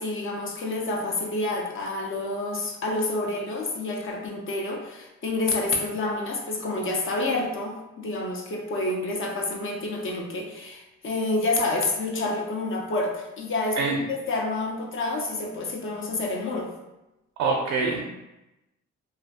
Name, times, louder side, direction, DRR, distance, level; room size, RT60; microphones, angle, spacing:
voice 1, 0.0-16.7, left 2 dB, 45° left, 1 dB, 0.5 m, -28 dB
voice 2, 17.4-18.0, right 4 dB, 80° right, 1 dB, 0.5 m, -24 dB
2.4 x 2.3 x 2.4 m, 0.95 s
cardioid pair, 90°, 30 cm